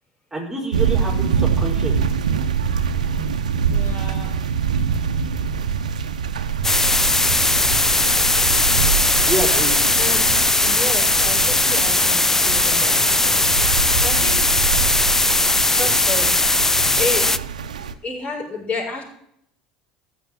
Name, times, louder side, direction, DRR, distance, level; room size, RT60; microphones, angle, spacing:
voice 1, 0.3-2.1 9.2-9.7 15.8-15.9, right 2 dB, 10° right, -1 dB, 4.4 m, -28 dB
sound 1, 0.7-17.9, right 6 dB, 80° right, 0.9 m, -25 dB
voice 2, 3.7-4.3 10.0-10.3 10.6-13.2 14.0-14.6 15.8-16.5 17.0-17.3 18.0-19.0, left 2 dB, 35° left, 0 dB, 7.0 m, -30 dB
sound 2, 6.6-17.4, left 2 dB, 10° left, 0.6 m, -18 dB
16.0 x 7.7 x 7.3 m, 0.71 s
figure-of-eight pair, 70°, 4 cm